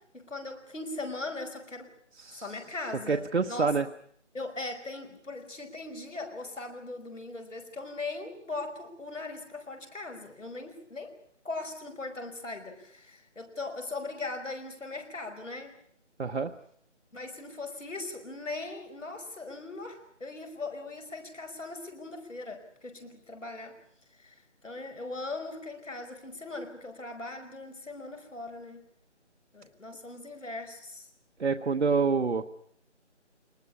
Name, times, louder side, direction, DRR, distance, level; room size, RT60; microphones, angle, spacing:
voice 1, 0.0-1.9 2.3-3.7 4.3-11.1 11.4-15.8 17.1-23.8 24.2-28.8 29.5-31.1, left 3 dB, 85° left, 5 dB, 5.3 m, -39 dB
voice 2, 3.1-3.9 16.2-16.5 31.4-32.4, right 5 dB, 60° right, 5 dB, 1.1 m, -27 dB
23.5 x 20.0 x 8.4 m, 0.64 s
figure-of-eight pair, 170°, 36 cm